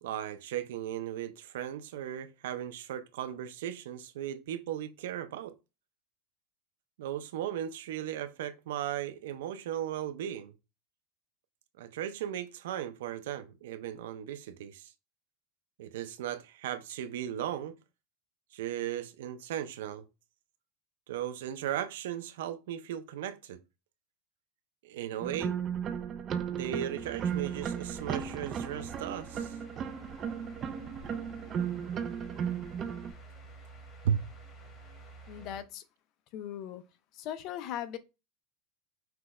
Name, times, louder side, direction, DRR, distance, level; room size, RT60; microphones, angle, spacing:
voice 1, 0.0-5.5 7.0-10.5 11.8-14.9 15.8-17.8 18.5-20.0 21.1-23.6 24.8-25.6 26.5-29.6 34.0-34.3, right 10 dB, 85° right, 0.5 m, -36 dB
sound 1, 25.2-33.1, right 8 dB, 25° right, 0.4 m, -35 dB
sound 2, 27.0-35.6, right 3 dB, 25° left, 1.5 m, -50 dB
voice 2, 35.3-35.8 36.3-36.8 37.1-38.0, left 10 dB, 45° left, 0.6 m, -39 dB
5.9 x 2.3 x 3.1 m
supercardioid pair, 155°, 0 cm